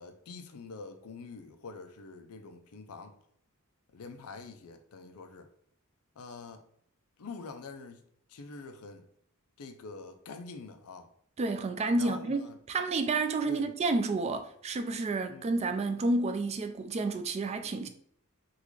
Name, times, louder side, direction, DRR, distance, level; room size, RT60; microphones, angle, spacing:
voice 1, 0.0-3.2 3.9-5.5 6.2-6.6 7.2-8.0 8.3-9.1 9.6-11.1 12.0-12.6 13.5-13.7 15.3-15.5, left 4 dB, 85° left, 0.5 m, -45 dB
voice 2, 11.4-12.4 12.7-17.9, right 3 dB, 30° right, 0.3 m, -30 dB
3.7 x 2.4 x 3.1 m
head